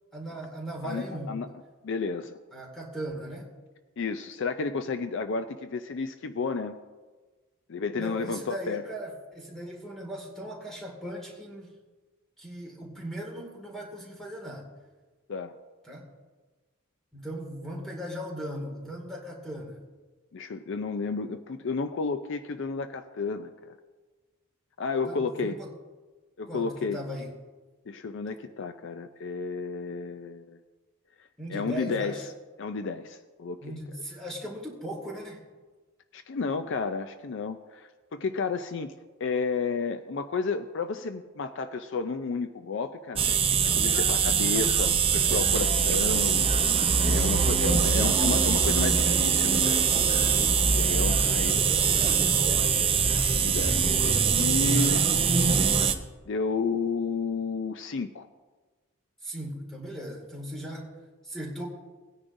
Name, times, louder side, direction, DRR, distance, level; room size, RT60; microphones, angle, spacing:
voice 1, 0.1-1.4 2.5-3.5 8.0-11.7 12.4-14.7 15.8-16.1 17.1-19.8 25.1-25.7 26.4-27.4 31.4-32.3 33.6-35.4 47.4-48.2 51.2-51.4 51.7-52.9 54.6-55.1 59.2-60.9 61.2-61.7, equal, ahead, -1 dB, 2.0 m, -38 dB
voice 2, 0.8-1.5 1.8-2.4 4.0-6.8 7.7-8.8 15.3-15.5 20.3-23.7 24.8-25.6 26.4-27.0 27.9-30.6 31.5-32.2 32.6-33.6 36.1-38.9 39.2-43.2 43.5-46.5 47.0-49.8 50.6-51.6 53.3-55.0 56.3-58.3, left 4 dB, 55° left, 9 dB, 0.4 m, -32 dB
sound 1, 43.2-55.9, right 6 dB, 25° right, 0.6 m, -23 dB
18.5 x 9.8 x 2.6 m, 1.3 s
head